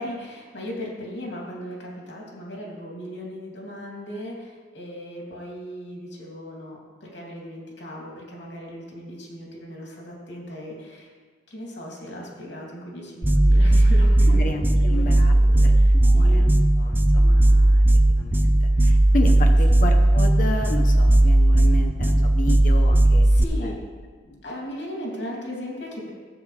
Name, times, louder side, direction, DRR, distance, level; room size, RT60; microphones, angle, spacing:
voice 1, 0.0-11.1 11.5-15.2 15.4-16.5 23.2-23.8 24.4-26.1, equal, 75° left, -3 dB, 2.9 m, -37 dB
sound 1, 13.2-23.4, right 1 dB, 10° right, 0.4 m, -17 dB
voice 2, 14.2-15.3 15.6-16.5 16.8-23.3 23.6-23.7 24.2-24.4, left 1 dB, 50° left, 3 dB, 0.8 m, -32 dB
13.5 x 8.0 x 3.3 m, 1.5 s
head